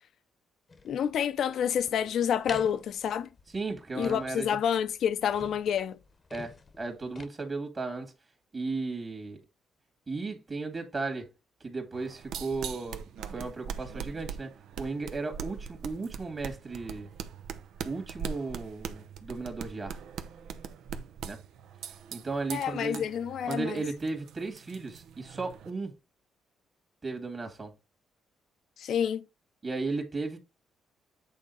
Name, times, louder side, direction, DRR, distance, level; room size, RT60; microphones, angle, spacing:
sound 1, 0.7-7.3, left 3 dB, 35° left, 0.9 m, -47 dB
voice 1, 0.8-3.3 4.0-6.0 22.5-23.8 28.8-29.2, left 8 dB, 70° left, 0.7 m, -28 dB
voice 2, 3.5-4.6 6.3-8.1 8.5-9.4 10.1-11.3 11.6-13.0 13.3-17.1 17.8-20.0 21.2-21.4 22.1-23.0 23.5-25.9 27.0-27.7 29.6-30.4, right 3 dB, 35° right, 1.9 m, -35 dB
sound 2, 11.9-25.7, right 7 dB, 80° right, 0.7 m, -42 dB
8.5 x 3.8 x 4.0 m
cardioid pair, 90°, 0 cm